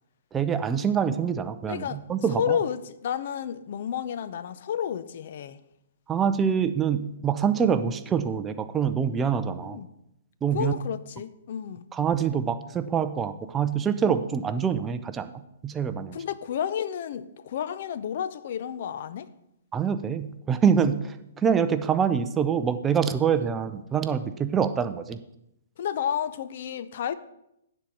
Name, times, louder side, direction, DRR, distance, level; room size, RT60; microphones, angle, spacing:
voice 1, 0.3-2.6 6.1-9.8 10.4-10.7 11.9-15.3 15.6-16.2 19.7-25.2, right 7 dB, 15° right, 0.5 m, -25 dB
voice 2, 1.7-2.0 2.4-5.6 9.6-9.9 10.5-11.8 16.1-19.3 25.8-27.1, left 9 dB, 55° left, 0.5 m, -31 dB
9.8 x 4.3 x 7.6 m
hypercardioid pair, 140°, 0 cm